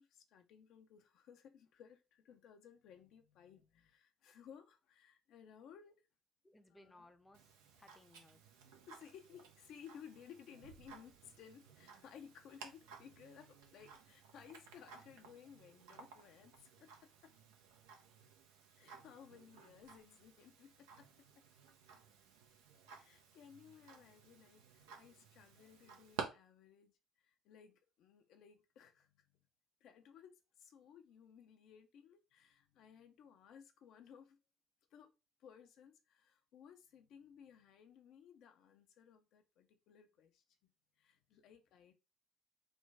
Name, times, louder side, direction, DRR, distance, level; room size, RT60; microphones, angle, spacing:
voice 1, 0.0-6.1 6.7-7.1 8.9-17.3 18.8-21.5 22.9-29.4 29.8-34.4 34.9-35.1 35.4-40.7 41.0-41.9, left 8 dB, 65° left, 0.4 m, -59 dB
voice 2, 6.4-8.4, left 2 dB, 15° left, 0.6 m, -64 dB
Tick-tock, 7.3-26.2, right 6 dB, 80° right, 0.6 m, -55 dB
3.2 x 2.2 x 3.3 m
hypercardioid pair, 55°, 0 cm